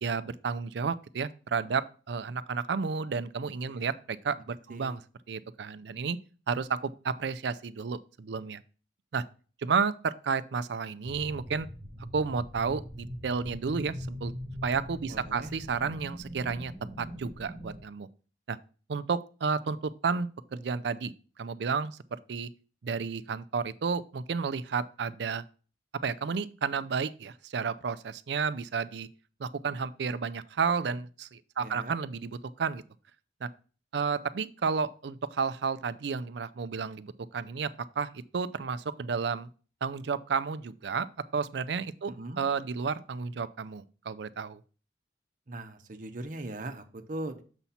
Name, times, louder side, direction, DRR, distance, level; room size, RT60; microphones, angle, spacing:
voice 1, 0.0-5.0 5.3-6.2 6.5-8.6 9.1-9.2 9.6-11.7 12.1-14.3 14.6-16.7 17.0-18.1 18.5-18.6 18.9-21.1 21.4-22.0 22.3-22.5 22.8-25.4 26.0-29.1 29.4-32.8 33.4-33.5 33.9-37.7 38.0-39.5 39.8-41.1 41.3-44.6, right 5 dB, 75° right, 0.4 m, -32 dB
sound 1, 11.0-17.8, equal, 30° right, 1.4 m, -42 dB
voice 2, 15.1-15.5 31.6-32.0 42.1-42.4 45.5-47.4, right 1 dB, 45° right, 0.8 m, -40 dB
7.0 x 4.2 x 5.6 m
head